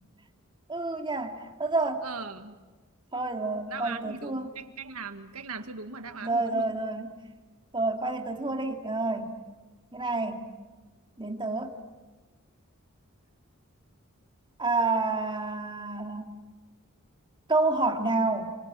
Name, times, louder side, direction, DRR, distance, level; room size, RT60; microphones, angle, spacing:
voice 1, 0.7-2.1 3.1-4.5 6.2-7.1 7.7-9.4 9.9-10.4 11.2-11.7 14.6-16.4 17.5-18.6, right 3 dB, 20° right, 4 dB, 2.4 m, -29 dB
voice 2, 2.0-2.6 3.7-6.8, right 4 dB, 85° right, 8 dB, 1.8 m, -39 dB
29.5 x 25.0 x 7.6 m, 1.3 s
head